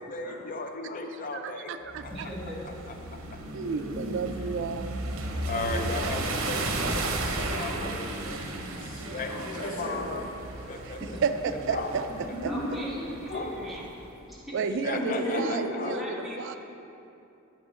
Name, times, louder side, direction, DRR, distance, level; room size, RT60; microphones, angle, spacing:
voice 1, 0.1-1.6 5.5-6.2 6.5-6.7 6.9-7.1 7.5-8.4 9.1-9.3 9.8-10.2 10.7-11.0 11.7-11.9 13.3-13.5 14.8-16.0, left 3 dB, 40° left, 4 dB, 0.5 m, -35 dB
voice 2, 1.3-2.3 3.5-5.0 10.8-12.1 12.4-12.5 14.5-16.6, right 5 dB, 60° right, 9 dB, 0.3 m, -32 dB
sound 1, 1.9-14.1, right 2 dB, 75° right, 0.8 m, -35 dB
voice 3, 2.1-2.6 5.7-5.8 11.1-11.2 12.4-13.8 14.3-14.5 15.8-16.6, equal, ahead, -7 dB, 1.4 m, -38 dB
voice 4, 3.6-4.3 5.4-6.1 7.2-7.8 8.8-10.1 12.3-12.8 14.9-15.5, equal, 80° left, -5 dB, 1.9 m, -36 dB
8.7 x 6.1 x 4.2 m, 2.8 s
head